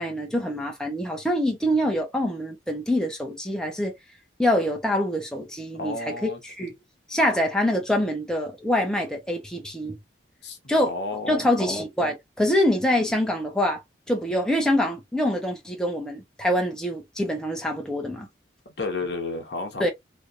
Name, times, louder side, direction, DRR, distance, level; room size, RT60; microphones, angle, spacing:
voice 1, 0.0-3.9 4.4-6.7 7.1-10.0 10.7-10.9 11.3-13.8 14.1-18.3 19.8-19.9, left 1 dB, 5° left, 0.8 m, -25 dB
voice 2, 5.7-6.4 10.4-10.6 10.9-11.5 18.6-19.9, left 3 dB, 65° left, 1.0 m, -31 dB
3.1 x 2.8 x 2.5 m
head